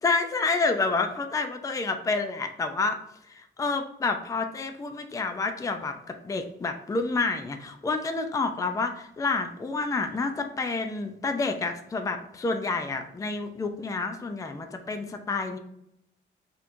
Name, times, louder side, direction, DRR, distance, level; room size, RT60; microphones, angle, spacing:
voice 1, 0.0-3.0 3.3-15.6, left 3 dB, 15° left, 6 dB, 0.4 m, -29 dB
5.5 x 3.1 x 2.5 m, 0.78 s
cardioid pair, 90°, 20 cm